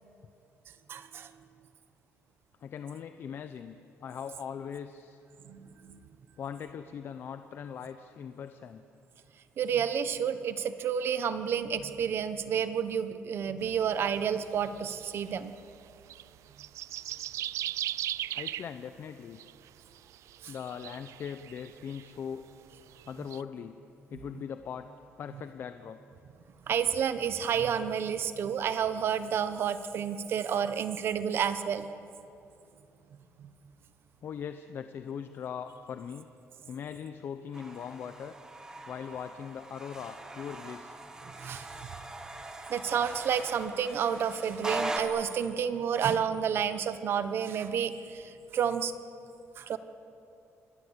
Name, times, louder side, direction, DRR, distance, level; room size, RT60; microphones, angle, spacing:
voice 1, 0.9-1.3 5.5-6.0 9.6-15.5 20.4-20.5 26.7-31.9 41.4-41.7 42.7-48.9 49.6-49.8, right 8 dB, 50° right, 11 dB, 1.2 m, -30 dB
voice 2, 2.6-3.8 4.0-5.2 6.4-8.8 18.3-19.4 20.5-22.4 23.1-23.8 24.1-24.9 25.2-26.0 34.2-36.3 36.7-38.3 38.9-40.9, left 7 dB, 45° left, 9 dB, 0.8 m, -40 dB
sound 1, 13.6-16.2 16.5-18.7 19.4-19.7 20.0-22.2 22.7-23.4, right 13 dB, 70° right, 0.6 m, -38 dB
sound 2, 37.5-45.0, right 2 dB, 15° right, 1.8 m, -41 dB
27.5 x 21.5 x 8.3 m, 2.8 s
cardioid pair, 175°, 5 cm